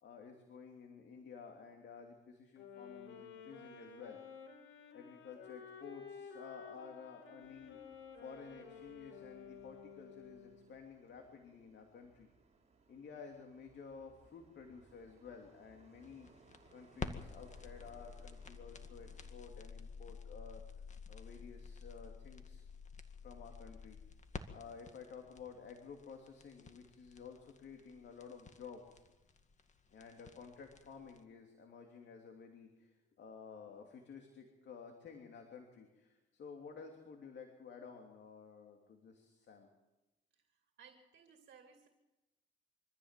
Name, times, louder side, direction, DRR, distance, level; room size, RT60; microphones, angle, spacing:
voice 1, 0.0-4.2 4.9-7.8 8.2-12.3 12.9-16.3 16.7-20.6 21.1-22.6 23.2-24.0 24.5-29.0 29.9-39.7, left 5 dB, 60° left, 3 dB, 3.0 m, -53 dB
sound 1, 2.6-10.8, left 6 dB, 90° left, 4.0 m, -53 dB
sound 2, 7.4-19.4, right 4 dB, 35° right, 3.9 m, -67 dB
sound 3, 16.0-31.2, left 5 dB, 35° left, 1.9 m, -50 dB
voice 2, 40.8-41.9, right 6 dB, 60° right, 5 dB, 2.5 m, -60 dB
24.5 x 14.5 x 7.6 m, 1.0 s
cardioid pair, 90°, 20 cm